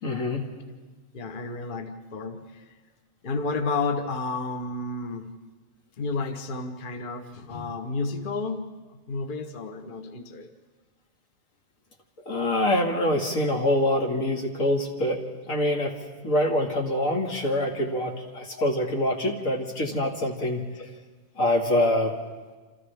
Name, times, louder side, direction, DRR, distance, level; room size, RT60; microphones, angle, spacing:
voice 1, 0.0-0.5 12.3-15.2 15.5-16.0 16.2-20.6 21.4-22.1, left 1 dB, 80° left, 1 dB, 2.5 m, -25 dB
voice 2, 1.1-2.7 3.2-5.3 6.0-8.6 8.9-10.5 18.5-18.7 20.0-20.1, left 3 dB, 40° left, 6 dB, 1.1 m, -31 dB
27.5 x 27.5 x 3.4 m, 1.4 s
omnidirectional pair, 1.4 m